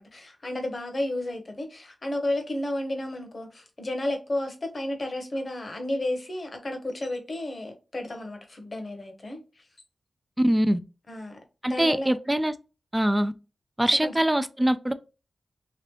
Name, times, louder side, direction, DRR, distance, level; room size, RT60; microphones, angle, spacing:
voice 1, 0.0-9.6 11.1-12.1 14.0-14.2, left 1 dB, 40° left, 0.9 m, -32 dB
voice 2, 10.4-10.8 11.6-12.5 12.9-13.3 13.8-14.9, right 1 dB, 15° right, 0.3 m, -23 dB
3.0 x 2.8 x 3.0 m
wide cardioid pair, 85°, 0 cm